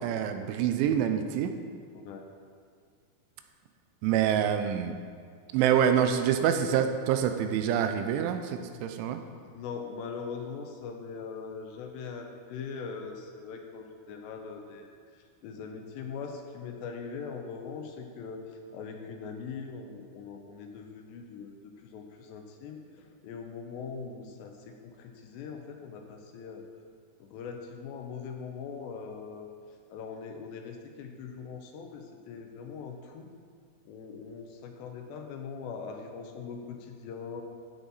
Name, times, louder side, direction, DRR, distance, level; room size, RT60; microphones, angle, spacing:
voice 1, 0.0-1.5 4.0-5.0 5.5-9.2, right 9 dB, 85° right, 7 dB, 3.1 m, -26 dB
voice 2, 1.9-2.3 9.4-26.6 27.2-29.5 29.9-33.3 33.9-37.4, left 5 dB, 75° left, 3 dB, 2.9 m, -41 dB
12.5 x 8.8 x 4.1 m, 2.1 s
omnidirectional pair, 5.3 m